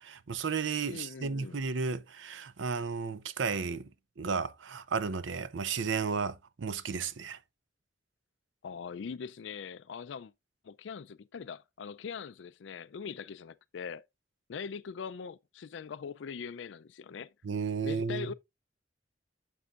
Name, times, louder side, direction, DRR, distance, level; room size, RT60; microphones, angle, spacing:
voice 1, 0.0-3.9 4.2-7.4 17.4-18.3, right 5 dB, 80° right, 0.6 m, -33 dB
voice 2, 0.9-1.6 8.6-10.3 10.6-14.0 14.5-17.3 17.8-18.3, left 6 dB, 70° left, 0.4 m, -41 dB
9.5 x 7.0 x 2.4 m
head